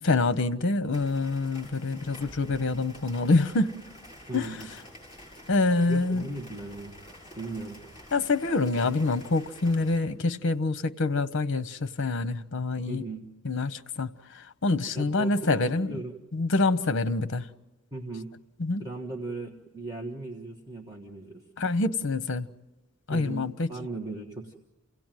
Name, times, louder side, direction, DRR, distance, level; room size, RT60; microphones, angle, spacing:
voice 1, 0.0-3.8 4.3-4.6 5.5-6.3 8.1-13.0 13.4-15.9 16.3-17.5 18.6-18.9 21.6-22.5 23.1-23.7, left 3 dB, 60° left, 0.8 m, -26 dB
sound 1, 0.9-10.0, left 1 dB, 25° left, 7.7 m, -48 dB
voice 2, 4.3-4.7 5.9-6.9 7.3-7.8 12.9-13.3 14.9-16.1 17.9-18.3 18.8-21.4 23.1-24.6, right 2 dB, 20° right, 1.4 m, -37 dB
28.0 x 17.0 x 9.1 m
head